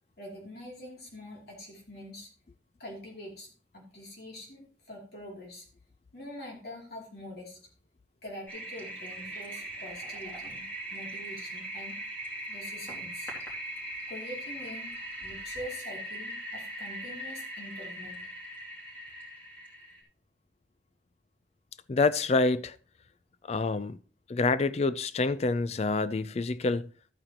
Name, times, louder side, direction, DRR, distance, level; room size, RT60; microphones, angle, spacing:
voice 1, 0.2-2.3 2.8-5.6 6.1-7.6 8.2-12.0 12.5-13.3 14.1-18.3, left 1 dB, 55° left, 2.8 m, -45 dB
Toilet flush, 8.5-20.0, right 1 dB, 10° left, 2.6 m, -40 dB
voice 2, 21.9-22.8 23.5-24.0 24.3-26.9, left 3 dB, 35° left, 0.4 m, -27 dB
13.0 x 8.8 x 2.9 m
head